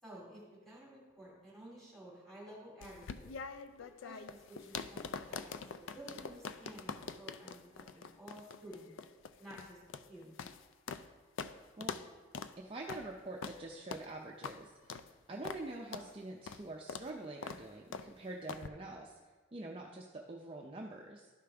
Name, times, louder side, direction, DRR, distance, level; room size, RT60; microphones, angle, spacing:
voice 1, 0.0-3.3 3.8-6.9 7.2-8.9 9.4-9.8 10.1-10.4, right 1 dB, ahead, -6 dB, 2.6 m, -53 dB
sound 1, 2.8-11.1 11.4-11.5 11.8-12.1 12.3-12.5 12.9-13.1 13.4-13.6 13.9-14.1 14.4-14.6 14.9-15.1 15.4-15.6 15.9-16.1 16.5-16.6 16.9-17.1 17.4-17.6 17.9-18.1 18.5-18.7, left 5 dB, 70° left, 0.4 m, -44 dB
voice 2, 12.6-19.2 19.5-21.3, right 2 dB, 25° right, -1 dB, 0.5 m, -46 dB
12.0 x 5.0 x 3.4 m, 1.3 s
head